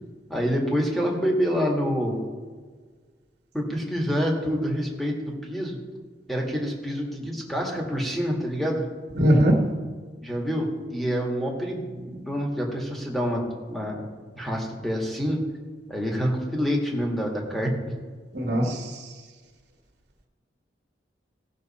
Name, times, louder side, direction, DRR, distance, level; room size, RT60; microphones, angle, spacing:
voice 1, 0.3-2.2 3.5-5.8 6.3-8.8 10.2-13.4 13.7-14.0 14.3-15.4 15.9-17.7, equal, ahead, -1 dB, 1.9 m, -27 dB
voice 2, 9.2-9.6 18.3-19.0, equal, 55° right, -1 dB, 1.7 m, -20 dB
17.5 x 6.4 x 4.3 m, 1.5 s
head